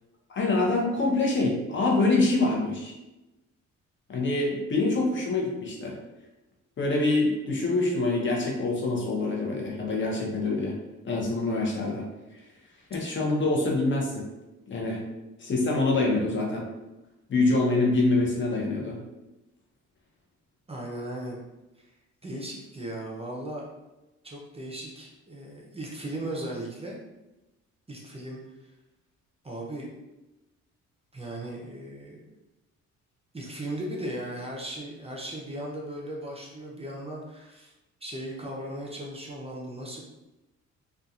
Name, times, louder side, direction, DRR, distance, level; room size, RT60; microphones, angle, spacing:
voice 1, 0.3-2.9 4.1-6.0 6.8-10.8 11.0-12.0 12.9-14.2 14.7-15.0 15.4-16.6 17.3-19.0, left 2 dB, 40° left, -1 dB, 0.7 m, -25 dB
voice 2, 20.7-21.4 21.8-21.9 22.2-23.6 24.2-27.0 27.9-28.7 29.4-29.9 31.1-32.2 33.3-37.7 38.0-40.0, right 1 dB, 20° right, -2 dB, 0.5 m, -37 dB
2.7 x 2.4 x 2.4 m, 1.0 s
cardioid pair, 90°, 30 cm